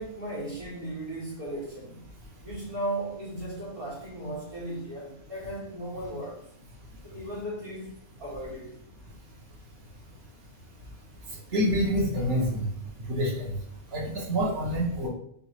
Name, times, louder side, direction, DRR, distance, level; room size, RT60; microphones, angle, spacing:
voice 1, 0.0-2.1 2.4-6.4 7.0-8.8, right 1 dB, 85° right, 1.9 m, -36 dB
voice 2, 11.5-12.6 13.1-13.5 13.9-15.1, equal, 45° right, 1.3 m, -26 dB
4.0 x 3.7 x 3.1 m
omnidirectional pair, 1.5 m